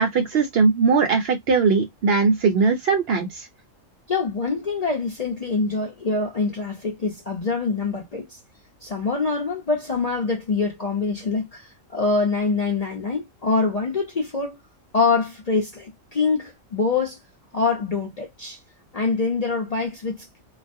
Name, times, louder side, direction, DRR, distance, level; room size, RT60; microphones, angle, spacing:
voice 1, 0.0-3.5, right 4 dB, 60° right, 0.7 m, -20 dB
voice 2, 4.1-8.3 8.8-14.6 14.9-17.2 17.5-18.6 18.9-20.4, left 4 dB, 50° left, 0.5 m, -25 dB
2.3 x 2.0 x 2.5 m
omnidirectional pair, 1.3 m